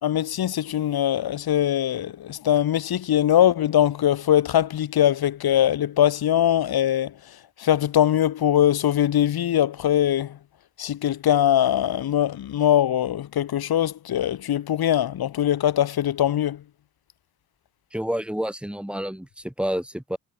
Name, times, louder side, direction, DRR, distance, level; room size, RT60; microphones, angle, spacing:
voice 1, 0.0-7.1 7.6-10.4 10.8-16.6, left 11 dB, 70° left, 2.5 m, -21 dB
voice 2, 17.9-20.2, equal, 5° right, 3.4 m, -29 dB
cardioid pair, 115°, 38 cm